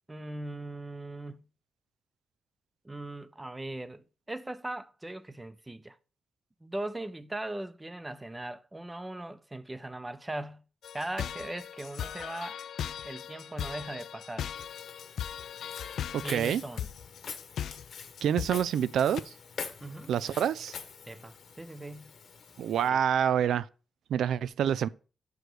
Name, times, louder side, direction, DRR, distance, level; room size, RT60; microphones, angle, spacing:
voice 1, 0.1-1.4 2.8-6.0 6.6-10.6 10.9-12.6 13.0-14.5 16.1-16.9 19.8-20.1 21.1-22.1 22.8-23.0, right 1 dB, 15° right, 0.6 m, -39 dB
sound 1, 10.8-19.2, left 9 dB, 80° left, 0.4 m, -38 dB
Walk footsteps, 14.6-22.9, left 6 dB, 65° left, 1.1 m, -45 dB
voice 2, 16.1-16.6 18.2-19.2 20.1-20.7 22.6-23.7 24.1-24.9, right 9 dB, 85° right, 0.3 m, -27 dB
6.7 x 4.8 x 6.0 m
cardioid pair, 100°, 0 cm